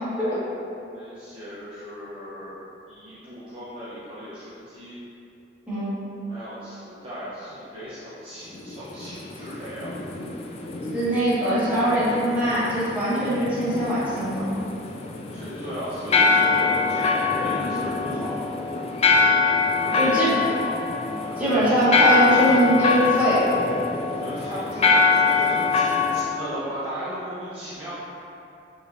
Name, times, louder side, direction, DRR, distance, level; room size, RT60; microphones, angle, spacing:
voice 1, 0.9-2.6 2.9-5.0 6.2-9.9 15.3-18.5 19.8-21.5 24.1-27.9, equal, 30° right, -13 dB, 0.7 m, -36 dB
sound 1, 8.5-26.2, left 4 dB, 35° left, 0.3 m, -24 dB
voice 2, 10.9-14.5 19.9-20.3 21.4-23.5, equal, 10° right, -13 dB, 1.4 m, -21 dB
5.0 x 3.3 x 2.5 m, 2.7 s
head